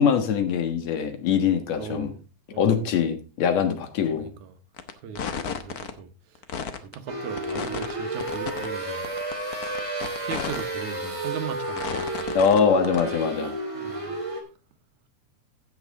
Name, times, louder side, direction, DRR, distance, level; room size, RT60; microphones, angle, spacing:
voice 1, 0.0-2.1 2.6-4.3 12.3-13.5, left 7 dB, 65° left, 2.6 m, -23 dB
voice 2, 1.8-2.2 2.5-2.9 4.1-4.6 5.0-6.4 6.8-9.1 10.2-12.3 13.7-14.2, right 7 dB, 85° right, 2.6 m, -38 dB
sound 1, 4.8-4.9 5.2-5.9 6.4-6.9 7.4-7.9 8.2-8.7 9.0-10.6 11.0-11.1 11.8-12.6 12.8-13.0, left 7 dB, 85° left, 0.8 m, -32 dB
sound 2, 7.1-14.4, right 2 dB, 10° right, 2.0 m, -32 dB
15.5 x 6.1 x 3.7 m
omnidirectional pair, 3.3 m